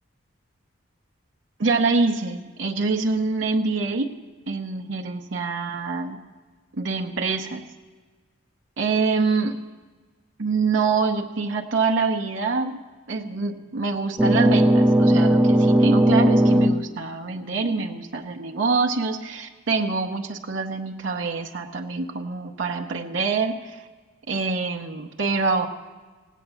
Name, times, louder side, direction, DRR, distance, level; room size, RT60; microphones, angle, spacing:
voice 1, 1.6-4.1 4.5-6.2 6.7-7.6 8.8-9.6 10.4-12.8 13.1-23.9 24.3-25.7, right 4 dB, 70° right, 3 dB, 0.7 m, -25 dB
sound 1, 14.2-16.9, right 1 dB, 10° right, 0.4 m, -17 dB
17.0 x 9.2 x 7.0 m, 1.4 s
head